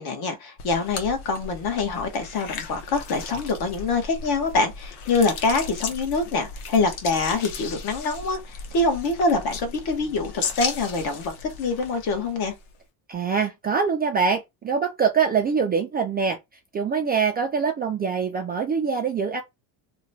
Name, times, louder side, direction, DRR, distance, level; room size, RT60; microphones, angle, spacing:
voice 1, 0.0-12.5, left 3 dB, 50° left, 1.2 m, -25 dB
sound 1, 0.6-12.8, left 5 dB, 90° left, 1.0 m, -36 dB
voice 2, 13.1-16.4 16.7-19.4, right 5 dB, 20° right, 0.3 m, -24 dB
3.0 x 2.2 x 3.9 m
cardioid pair, 140°, 47 cm